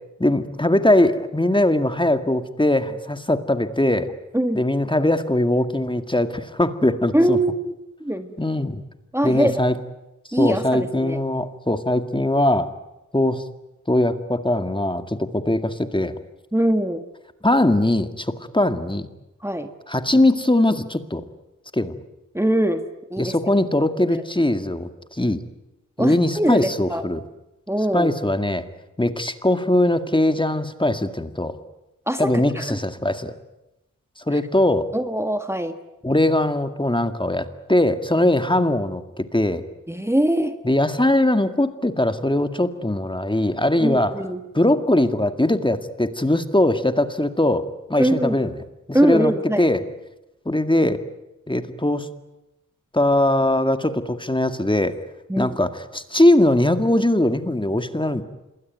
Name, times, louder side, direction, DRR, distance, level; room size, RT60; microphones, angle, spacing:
voice 1, 0.2-4.1 4.5-7.4 8.4-8.8 9.2-9.8 10.4-12.7 13.1-13.4 13.9-16.1 17.4-19.1 19.9-21.2 21.7-22.0 23.2-25.4 26.0-27.2 27.9-28.6 29.0-31.5 32.2-33.3 34.3-34.9 36.0-39.6 40.6-44.2 44.5-47.6 47.9-48.5 49.0-49.8 50.5-51.0 51.5-52.1 52.9-55.0 55.4-58.2, left 1 dB, 15° left, 9 dB, 2.0 m, -20 dB
voice 2, 7.1-8.3 9.1-9.6 10.3-11.2 16.5-17.0 19.4-19.7 22.3-22.8 23.1-23.3 24.1-24.2 26.0-27.0 27.7-28.1 32.1-32.8 34.9-35.8 39.9-40.6 43.8-44.4 48.0-48.4 48.9-49.7 55.3-55.5, right 1 dB, 10° right, 7 dB, 1.7 m, -22 dB
26.5 x 21.0 x 9.3 m, 0.94 s
cardioid pair, 50°, 33 cm